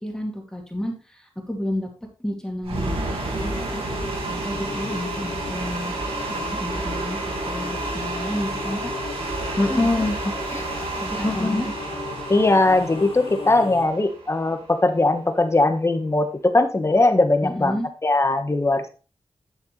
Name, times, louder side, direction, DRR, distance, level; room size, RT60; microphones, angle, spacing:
voice 1, 0.0-1.9 2.2-3.1 3.4-3.8 4.3-7.2 7.4-8.9 9.7-10.1 10.4-10.6 11.0-11.7 17.4-17.9, left 1 dB, 5° left, 0 dB, 2.5 m, -31 dB
sound 1, 2.6-14.8, right 2 dB, 85° right, 2.4 m, -31 dB
sound 2, 2.9-13.9, left 4 dB, 75° left, 1.8 m, -36 dB
voice 2, 9.6-10.1 10.5-10.6 11.2-11.6 12.3-18.9, left 2 dB, 30° left, 6 dB, 1.4 m, -20 dB
11.0 x 6.5 x 3.3 m, 0.33 s
wide cardioid pair, 90°, 10 cm